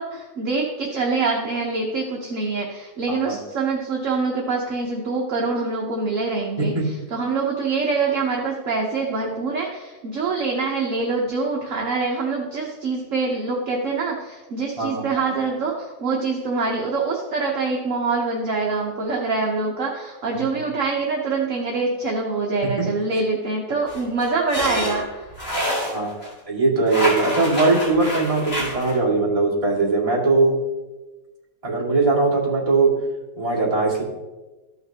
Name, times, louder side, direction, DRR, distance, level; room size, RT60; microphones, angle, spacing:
voice 1, 0.0-25.2, right 4 dB, 50° right, -1 dB, 1.2 m, -25 dB
voice 2, 3.1-3.4 6.6-6.9 14.8-15.3 20.3-20.6 25.9-26.1 26.5-30.6 31.6-32.9 33.4-34.0, right 3 dB, 20° right, -5 dB, 2.1 m, -20 dB
sound 1, 23.9-26.3 26.9-29.0, equal, 40° left, 2.8 m, -27 dB
14.0 x 5.8 x 2.8 m, 1.1 s
omnidirectional pair, 1.9 m